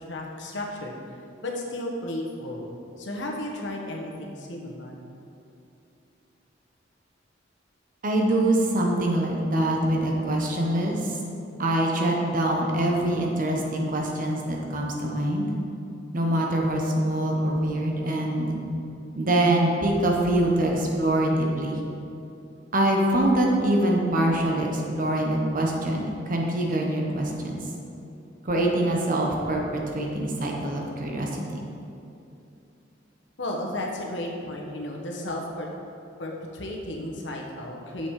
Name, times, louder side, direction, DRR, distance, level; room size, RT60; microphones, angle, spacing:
voice 1, 0.1-1.2 1.4-2.7 3.0-5.0 33.4-35.7 36.2-38.1, left 1 dB, 75° left, 0 dB, 1.2 m, -33 dB
voice 2, 8.0-11.1 11.6-15.5 16.1-18.6 19.1-21.8 22.7-27.6 28.4-31.6, right 1 dB, 50° right, 0 dB, 1.1 m, -24 dB
7.4 x 6.2 x 4.8 m, 2.8 s
head